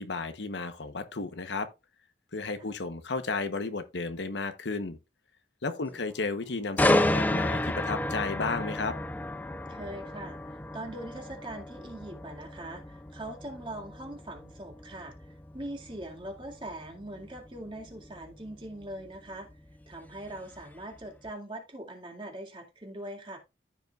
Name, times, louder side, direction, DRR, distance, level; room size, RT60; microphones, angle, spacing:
voice 1, 0.0-1.7 2.3-5.0 5.6-8.9, left 3 dB, 85° left, 1.0 m, -33 dB
sound 1, 6.8-20.6 21.0-21.3, left 1 dB, 10° left, 0.4 m, -32 dB
voice 2, 9.7-19.5 19.9-23.4, right 1 dB, 30° right, 2.1 m, -42 dB
14.0 x 5.4 x 2.4 m
head